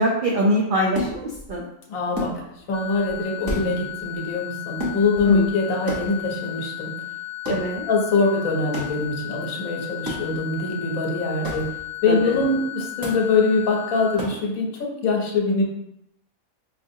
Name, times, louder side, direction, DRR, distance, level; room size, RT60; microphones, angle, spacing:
voice 1, 0.0-1.6 5.3-5.5 7.5-7.8 12.1-12.3, right 1 dB, 70° right, -2 dB, 0.4 m, -23 dB
sound 1, 0.9-1.6 2.1-2.8 3.0-3.2 3.4-4.2 4.8-5.5 5.9-6.5 7.4-7.8 8.7-9.1 10.1-10.5 11.4-11.9 13.0-13.4 14.1-14.6, left 1 dB, 20° right, 0.6 m, -32 dB
voice 2, 1.9-2.3 2.7-7.0 7.9-11.7 12.0-15.6, left 3 dB, 80° left, 1 dB, 1.2 m, -23 dB
sound 2, 2.7-14.2, left 15 dB, 55° left, 0.7 m, -35 dB
4.7 x 2.4 x 2.6 m, 0.81 s
omnidirectional pair, 1.4 m